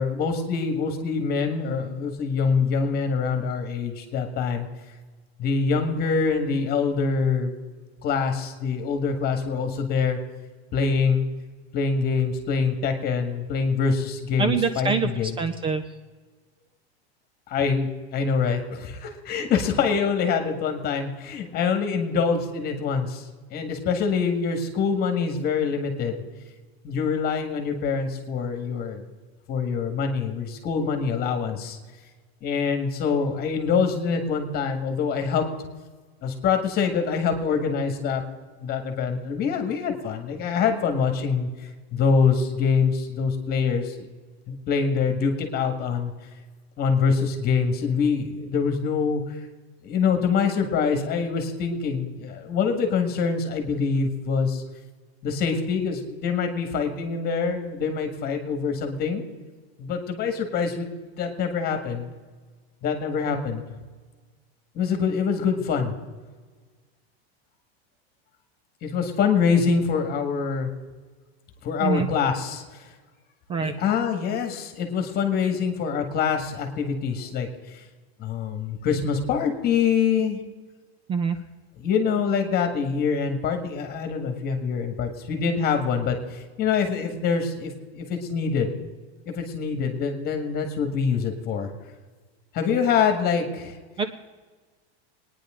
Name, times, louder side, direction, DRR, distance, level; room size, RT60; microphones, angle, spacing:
voice 1, 0.0-4.7 5.4-7.5 8.0-10.2 10.7-11.2 11.7-15.4 17.5-23.2 23.5-26.2 26.8-29.0 29.5-31.8 32.4-35.5 36.2-38.2 38.6-41.5 41.9-44.0 44.5-46.1 46.8-49.4 49.8-54.6 55.2-59.2 59.8-62.1 62.8-63.6 64.8-65.9 68.8-70.7 71.6-72.8 73.6-77.5 78.2-80.4 81.8-88.8 89.3-91.7 92.5-93.7, left 5 dB, 30° left, 5 dB, 1.9 m, -25 dB
voice 2, 14.4-15.1 15.4-15.8 71.8-72.1 73.5-73.8 81.1-81.4 94.0-94.1, right 5 dB, 15° right, 10 dB, 0.4 m, -24 dB
22.0 x 9.9 x 3.8 m, 1.4 s
supercardioid pair, 155°, 31 cm